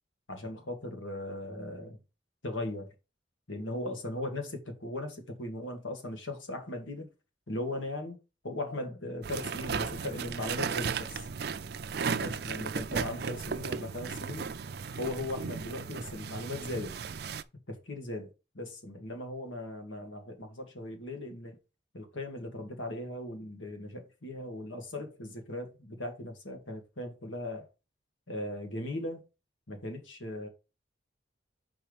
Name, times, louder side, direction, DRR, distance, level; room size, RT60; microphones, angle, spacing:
voice 1, 0.3-2.0 2.4-2.9 3.5-7.1 7.5-8.2 8.4-11.3 12.1-14.5 15.0-17.0 17.7-18.3 18.5-21.6 21.9-27.7 28.3-29.2 29.7-30.5, left 1 dB, 85° left, 1.9 m, -38 dB
sound 1, 9.2-17.4, right 5 dB, 55° right, 0.4 m, -35 dB
5.7 x 4.4 x 5.1 m
head